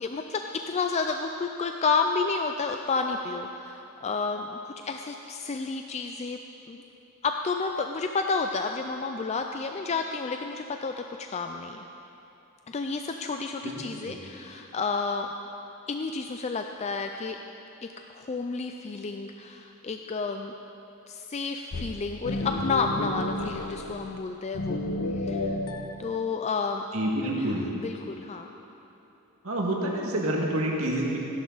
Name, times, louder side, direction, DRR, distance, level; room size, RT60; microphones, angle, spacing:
voice 1, 0.0-6.4 6.7-6.8 7.2-10.9 11.2-11.8 12.7-15.3 15.9-17.4 17.8-20.5 21.1-24.9 25.2-25.6 26.0-26.9 27.2-27.4 27.8-28.5, left 4 dB, 30° left, 5 dB, 0.4 m, -31 dB
voice 2, 13.6-14.2 26.9-27.6 29.4-31.2, right 1 dB, 70° right, -2 dB, 2.0 m, -28 dB
sound 1, 21.7-24.2 24.5-26.0, left 2 dB, 80° left, 0.8 m, -31 dB
16.5 x 11.5 x 4.0 m, 2.9 s
head